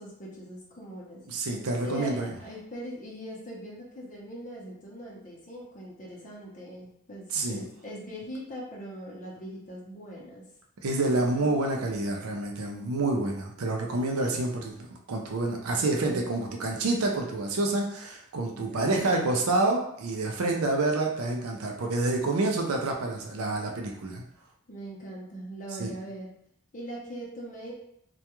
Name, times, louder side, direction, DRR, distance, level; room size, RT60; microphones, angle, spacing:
voice 1, 0.0-1.2 1.8-10.4 11.1-11.4 15.8-16.2 18.5-19.1 24.7-26.3 26.7-27.7, right 1 dB, 35° left, -3 dB, 0.6 m, -41 dB
voice 2, 1.3-2.3 7.3-7.6 10.8-24.2 25.8-25.9, right 2 dB, 80° right, 1 dB, 0.5 m, -28 dB
2.3 x 2.2 x 2.9 m, 0.76 s
head